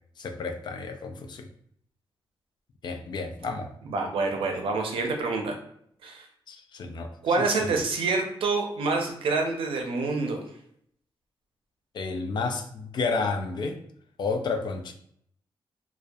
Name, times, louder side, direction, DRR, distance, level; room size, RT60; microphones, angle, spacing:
voice 1, 0.2-1.5 2.8-3.7 6.5-7.1 7.6-7.8 11.9-13.8 14.2-14.9, left 4 dB, 55° left, 6 dB, 0.3 m, -31 dB
voice 2, 3.9-5.6 6.0-6.3 7.2-10.4, right 3 dB, 80° right, 3 dB, 0.5 m, -27 dB
2.6 x 2.1 x 2.3 m, 0.68 s
cardioid pair, 100°, 9 cm